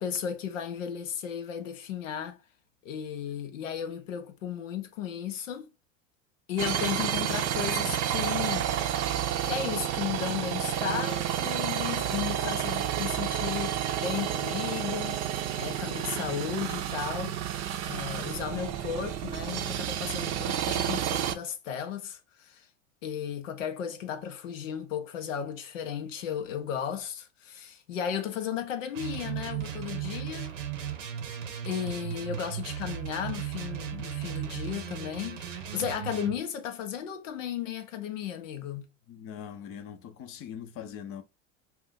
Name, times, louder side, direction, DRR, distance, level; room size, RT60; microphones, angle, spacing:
voice 1, 0.0-2.4 2.8-5.7 6.5-8.7 9.4-15.2 15.6-17.4 17.8-22.7 23.0-30.5 31.7-38.8, left 9 dB, 80° left, 0.6 m, -35 dB
sound 1, 6.6-21.3, right 10 dB, 45° right, 0.5 m, -30 dB
sound 2, 28.9-36.4, right 10 dB, 85° right, 0.7 m, -36 dB
voice 2, 39.1-41.2, left 8 dB, 40° left, 0.6 m, -41 dB
2.4 x 2.2 x 3.6 m
hypercardioid pair, 85°, 37 cm